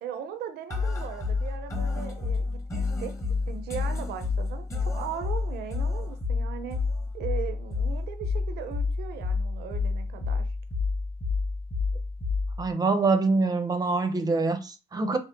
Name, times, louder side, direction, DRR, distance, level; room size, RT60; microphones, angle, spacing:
voice 1, 0.0-3.1 3.5-6.8 7.1-10.5, right 8 dB, 75° right, 0.7 m, -38 dB
sound 1, 0.7-12.7, left 4 dB, 20° left, 1.1 m, -29 dB
voice 2, 12.6-15.2, right 3 dB, 20° right, 0.7 m, -25 dB
5.5 x 2.0 x 3.6 m
cardioid pair, 110°, 17 cm